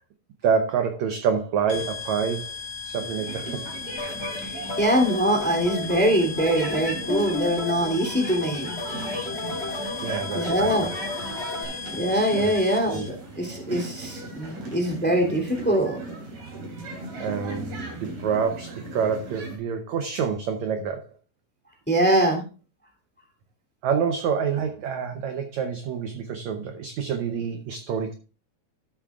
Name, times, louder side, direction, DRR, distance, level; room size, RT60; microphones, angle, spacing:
voice 1, 0.4-2.5 2.8-3.6 10.0-11.0 12.4-12.5 12.9-13.1 17.2-21.1 23.8-28.1, right 6 dB, 75° right, 6 dB, 1.7 m, -27 dB
sound 1, 1.7-13.1, left 5 dB, 40° left, 2.3 m, -37 dB
sound 2, 2.9-19.6, right 2 dB, 45° right, 4.0 m, -38 dB
sound 3, 4.0-11.6, left 2 dB, 65° left, 0.6 m, -33 dB
voice 2, 4.4-8.7 10.3-10.9 11.9-16.0 21.9-22.4, right 1 dB, 5° left, 3 dB, 2.1 m, -23 dB
13.5 x 8.3 x 2.4 m, 0.34 s
omnidirectional pair, 4.3 m